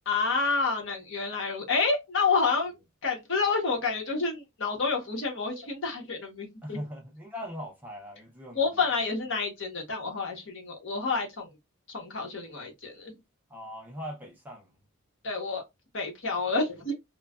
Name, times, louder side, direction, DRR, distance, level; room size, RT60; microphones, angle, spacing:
voice 1, 0.1-2.8 3.0-6.8 8.5-11.5 11.9-13.2 15.2-15.6 15.9-16.9, left 4 dB, 55° left, 1.0 m, -29 dB
voice 2, 6.6-8.6 13.5-14.7, equal, 10° right, 0.5 m, -40 dB
3.1 x 2.2 x 2.3 m
head